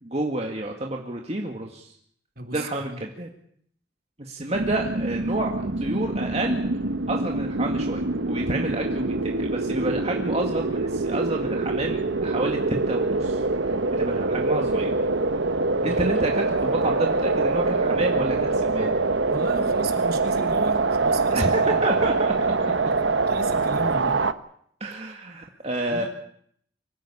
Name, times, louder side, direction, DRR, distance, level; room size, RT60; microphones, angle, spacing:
voice 1, 0.0-1.9 2.5-3.3 4.2-6.7 7.1-15.0 15.8-19.0 21.3-22.5 24.8-26.0, right 2 dB, 35° right, 1 dB, 2.1 m, -29 dB
voice 2, 2.4-3.0 15.8-16.0 19.3-21.8 23.3-24.2 25.9-26.1, right 2 dB, 55° right, 4 dB, 3.4 m, -35 dB
sound 1, 4.5-24.3, right 3 dB, 80° right, 1.1 m, -24 dB
25.0 x 16.0 x 8.6 m, 0.67 s
head